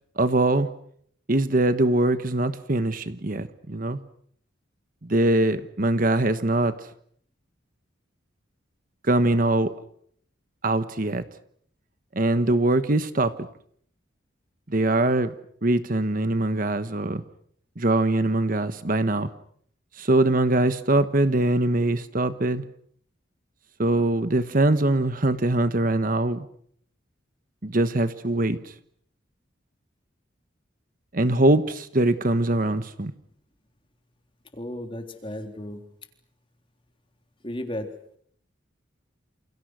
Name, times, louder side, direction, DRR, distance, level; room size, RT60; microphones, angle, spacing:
voice 1, 0.2-0.7 1.3-4.0 5.0-6.7 9.0-9.7 10.6-11.2 12.1-13.5 14.7-15.3 15.6-17.2 17.8-19.3 20.0-22.6 23.8-26.5 27.6-28.6 31.1-33.1, right 2 dB, 45° right, 1.3 m, -22 dB
voice 2, 34.5-35.8 37.4-37.9, left 1 dB, 25° left, 3.7 m, -34 dB
29.0 x 28.5 x 6.3 m
head